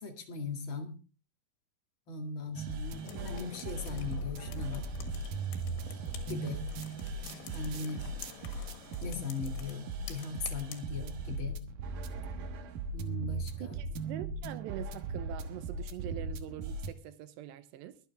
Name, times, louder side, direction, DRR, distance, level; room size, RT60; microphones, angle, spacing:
voice 1, 0.0-0.9 2.1-4.9 6.3-6.6 7.5-8.0 9.0-11.6 12.9-13.7, left 4 dB, 45° left, 1.8 m, -39 dB
sound 1, 2.5-16.9, right 3 dB, 65° right, 2.3 m, -38 dB
sound 2, 3.0-10.8, left 7 dB, 90° left, 3.9 m, -48 dB
voice 2, 13.6-18.0, right 12 dB, 80° right, 2.9 m, -44 dB
22.5 x 8.1 x 3.6 m
omnidirectional pair, 5.1 m